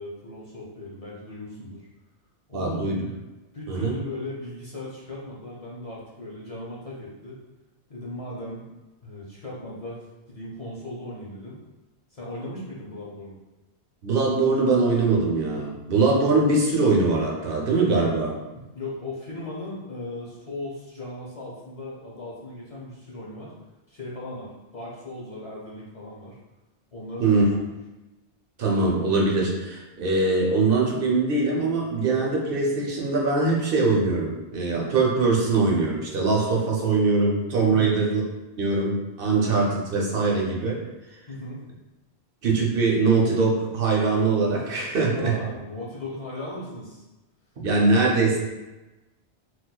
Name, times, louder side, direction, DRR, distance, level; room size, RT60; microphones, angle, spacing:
voice 1, 0.0-1.9 2.5-2.9 3.5-7.4 7.9-8.7 9.0-11.6 12.1-13.4 18.5-23.5 23.9-26.4 26.9-27.7 37.7-38.0 41.3-41.6 45.1-47.0, left 1 dB, 45° left, -5 dB, 0.6 m, -37 dB
voice 2, 2.5-3.0 3.7-3.9 14.0-18.4 27.2-27.5 28.6-38.2 38.6-40.8 42.4-45.4 47.6-48.4, right 3 dB, 65° right, -2 dB, 0.8 m, -22 dB
4.1 x 2.3 x 2.2 m, 1.1 s
omnidirectional pair, 1.1 m